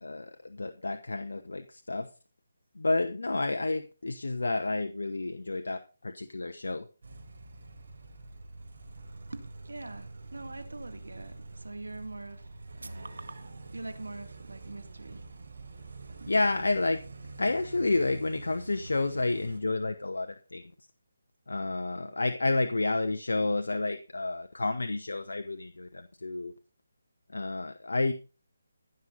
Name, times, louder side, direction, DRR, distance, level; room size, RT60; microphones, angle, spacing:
voice 1, 0.0-2.1 2.7-6.9 16.3-17.0 17.4-20.6 21.5-26.5 27.3-28.1, left 2 dB, 75° left, 1.0 m, -30 dB
sound 1, 7.0-19.6, right 2 dB, 70° right, 4.3 m, -46 dB
voice 2, 9.3-13.3 13.7-15.2 15.8-16.4 22.0-22.8, right 2 dB, 85° right, 2.1 m, -44 dB
15.5 x 6.5 x 5.5 m
figure-of-eight pair, 155°, 0 cm